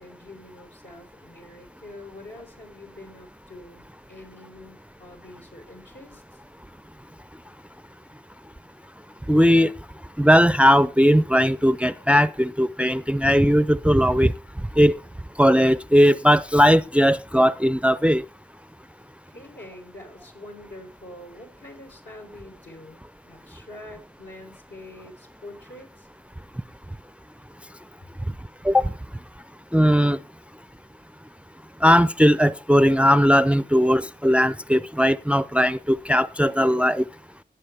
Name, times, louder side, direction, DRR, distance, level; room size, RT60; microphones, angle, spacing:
voice 1, 0.0-6.4 19.3-26.1, left 1 dB, 75° left, 4.1 m, -45 dB
voice 2, 9.3-9.7 10.2-14.3 14.8-14.9 15.4-18.2 28.6-28.9 29.7-30.2 31.8-37.1, equal, 5° right, 0.5 m, -18 dB
18.5 x 8.2 x 3.3 m
cardioid pair, 45°, 18 cm